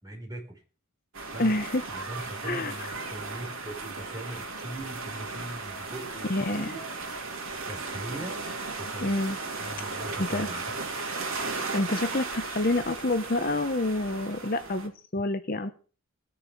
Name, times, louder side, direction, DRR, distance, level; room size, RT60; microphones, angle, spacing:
voice 1, 0.0-0.6 1.3-1.5 1.9-6.8 7.7-8.4 8.8-9.1 9.6-10.6, right 1 dB, 15° right, 1 dB, 4.5 m, -40 dB
sound 1, 1.1-14.9, right 3 dB, 70° right, 3.1 m, -36 dB
voice 2, 1.4-1.8 2.4-2.9 6.3-6.7 9.0-9.4 10.2-10.5 11.7-15.7, left 2 dB, 40° left, 8 dB, 1.0 m, -28 dB
19.0 x 6.8 x 6.8 m, 0.39 s
head